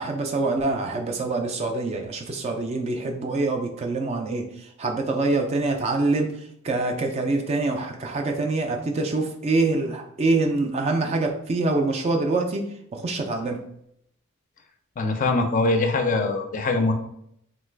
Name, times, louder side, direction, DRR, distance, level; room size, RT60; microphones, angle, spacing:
voice 1, 0.0-12.6 12.9-13.6, right 3 dB, 30° right, 3 dB, 0.3 m, -25 dB
voice 2, 15.0-16.9, left 3 dB, 40° left, 4 dB, 0.4 m, -22 dB
3.0 x 2.3 x 3.2 m, 0.73 s
head